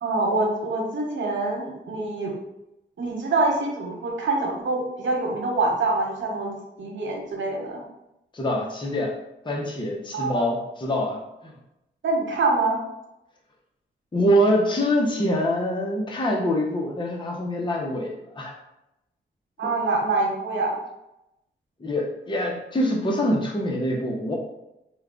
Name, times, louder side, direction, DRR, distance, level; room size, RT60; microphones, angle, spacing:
voice 1, 0.0-2.3 3.0-6.5 6.8-7.8 10.1-10.4 12.0-12.8 19.6-20.8, right 3 dB, 75° right, -1 dB, 1.1 m, -25 dB
voice 2, 8.3-9.2 9.4-11.5 14.1-18.5 19.6-19.7 21.8-24.3, equal, 25° left, -1 dB, 0.8 m, -25 dB
4.6 x 2.2 x 3.7 m, 0.89 s
cardioid pair, 70°, 20 cm